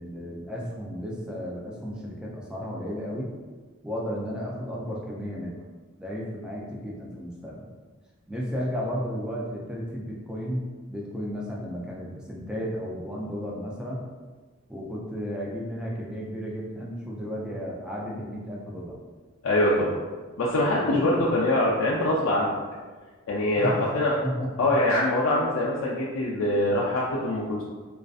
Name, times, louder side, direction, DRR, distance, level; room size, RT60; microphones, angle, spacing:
voice 1, 0.0-3.3 3.8-5.5 6.0-7.7 8.3-14.1 14.7-19.0 20.6-21.4 23.6-23.9 24.2-24.7, equal, 5° right, -4 dB, 0.3 m, -33 dB
voice 2, 19.4-20.0 20.4-22.6 23.3-24.1 24.6-27.6, left 1 dB, 75° left, -5 dB, 0.4 m, -24 dB
2.4 x 2.4 x 2.3 m, 1.4 s
head